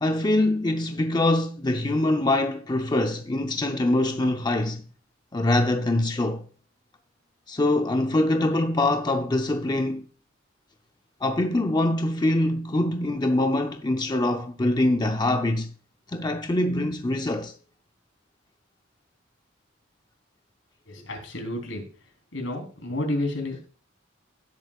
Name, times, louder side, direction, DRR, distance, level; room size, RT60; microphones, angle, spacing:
voice 1, 0.0-4.8 5.3-6.4 7.5-10.1 11.2-15.7 16.1-17.5, left 1 dB, 20° left, 0.5 m, -24 dB
voice 2, 20.9-21.8 22.3-23.7, left 1 dB, 70° left, 3.5 m, -30 dB
16.5 x 7.9 x 2.4 m
head